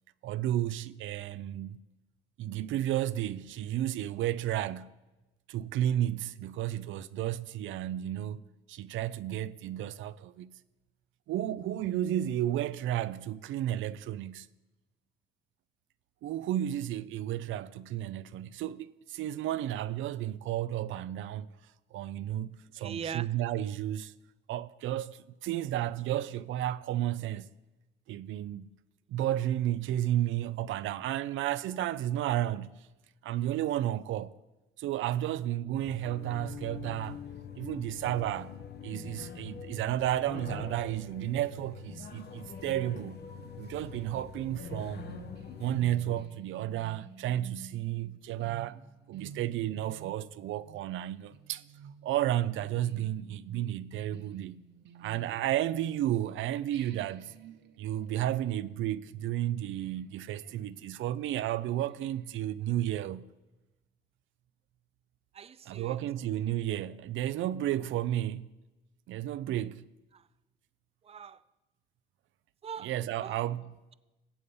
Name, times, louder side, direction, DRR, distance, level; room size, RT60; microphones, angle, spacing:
voice 1, 0.2-1.8 2.4-5.0 5.5-8.4 8.7-10.6 11.3-14.5 16.2-21.5 21.9-24.1 24.5-27.5 28.1-28.7 29.1-32.8 33.2-34.4 34.8-37.2 37.6-38.6 38.8-43.2 43.6-45.2 45.6-48.8 49.1-51.6 52.0-54.6 55.0-57.3 57.8-63.3 65.7-68.5 69.1-69.9 72.8-73.7, right 12 dB, 80° right, 0.5 m, -32 dB
voice 2, 22.8-23.3 65.3-66.0 70.1-70.2 71.0-71.4 72.6-72.9 73.2-73.4, right 7 dB, 30° right, 0.5 m, -40 dB
sound 1, 35.8-46.2, left 6 dB, 55° left, 1.2 m, -44 dB
sound 2, 43.2-56.3 56.7-62.6, right 6 dB, 60° right, 1.0 m, -53 dB
14.5 x 8.4 x 5.4 m
cardioid pair, 90°, 20 cm